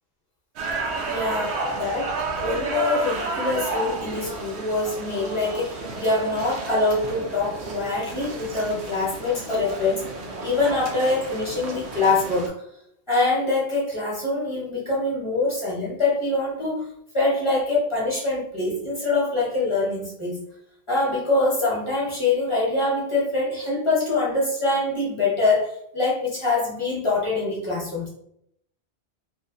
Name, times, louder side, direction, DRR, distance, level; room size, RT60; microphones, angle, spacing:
sound 1, 0.6-12.5, right 3 dB, 85° right, 0.9 m, -32 dB
voice 1, 1.0-10.1 10.4-12.6 13.1-16.9 17.1-20.5 20.9-28.1, left 2 dB, 30° left, -6 dB, 0.8 m, -24 dB
3.0 x 2.1 x 2.4 m, 0.72 s
omnidirectional pair, 1.1 m